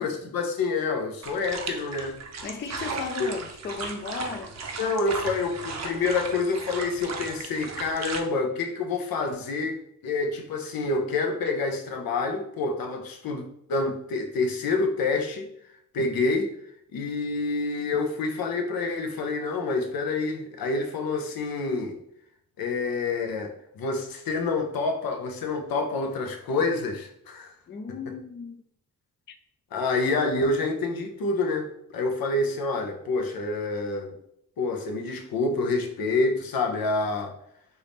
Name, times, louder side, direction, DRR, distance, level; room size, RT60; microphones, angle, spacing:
voice 1, 0.0-2.2 3.2-3.3 4.8-9.8 10.0-13.4 13.7-15.5 15.9-16.5 16.9-21.9 22.6-27.5 29.7-34.1 34.6-37.3, left 3 dB, 80° left, 0.8 m, -27 dB
sound 1, 1.2-8.2, right 4 dB, 50° right, 0.6 m, -36 dB
voice 2, 2.4-4.5 27.7-28.6, left 5 dB, 35° left, 0.4 m, -35 dB
4.5 x 2.7 x 3.4 m
cardioid pair, 80°, 35 cm